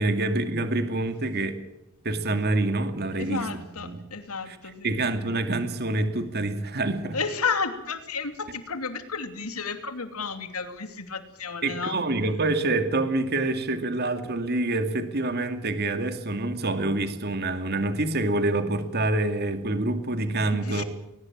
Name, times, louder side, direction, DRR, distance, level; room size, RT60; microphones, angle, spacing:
voice 1, 0.0-1.6 2.0-3.5 3.8-4.0 4.5-4.6 4.8-7.2 11.6-20.8, right 2 dB, 45° right, 8 dB, 2.3 m, -26 dB
voice 2, 3.1-5.0 7.1-12.0 20.6-20.8, left 5 dB, 80° left, 9 dB, 2.9 m, -32 dB
21.5 x 19.5 x 7.3 m, 0.91 s
head